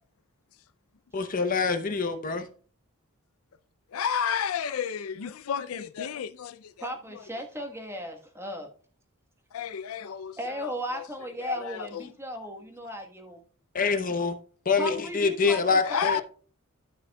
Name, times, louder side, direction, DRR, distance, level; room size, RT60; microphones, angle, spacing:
voice 1, 1.1-2.4 13.7-14.3 14.7-16.2, left 4 dB, 40° left, 0.8 m, -25 dB
voice 2, 3.9-6.9 9.5-11.0 11.4-12.1 14.8-15.1 15.8-16.2, left 7 dB, 75° left, 0.4 m, -32 dB
voice 3, 6.8-8.7 10.4-13.4 14.8-16.2, equal, 10° right, 1.3 m, -36 dB
13.0 x 6.1 x 2.3 m
head